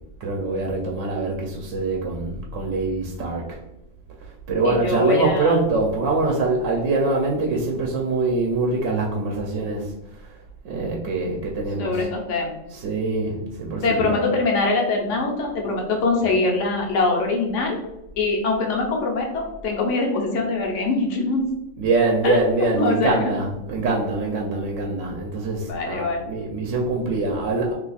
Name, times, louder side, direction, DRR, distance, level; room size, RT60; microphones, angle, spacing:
voice 1, 0.2-3.6 4.5-9.8 10.6-12.0 12.7-14.2 21.8-27.7, right 3 dB, 90° right, 0 dB, 1.0 m, -24 dB
voice 2, 4.6-5.6 11.8-12.6 13.8-17.8 18.2-21.5 22.2-22.4 22.8-23.3 25.7-26.2, left 3 dB, 80° left, 0 dB, 1.1 m, -23 dB
2.8 x 2.3 x 4.0 m, 0.87 s
omnidirectional pair, 1.3 m